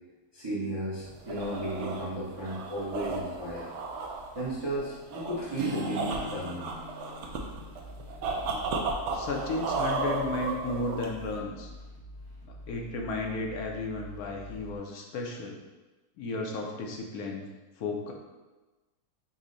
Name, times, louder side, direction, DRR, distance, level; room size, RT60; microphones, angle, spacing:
voice 1, 0.3-3.7 4.3-6.7, right 1 dB, 25° right, -7 dB, 0.6 m, -34 dB
sound 1, 1.0-11.4, right 3 dB, 65° right, 0.7 m, -34 dB
Acoustic guitar, 5.6-9.5, left 1 dB, 85° right, 1.2 m, -43 dB
sound 2, 7.3-14.8, left 1 dB, 50° left, 1.0 m, -46 dB
voice 2, 9.1-11.7 12.5-15.6 16.2-17.4 17.8-18.1, left 3 dB, 75° left, 1 dB, 1.1 m, -34 dB
5.3 x 2.1 x 3.8 m, 1.2 s
omnidirectional pair, 1.6 m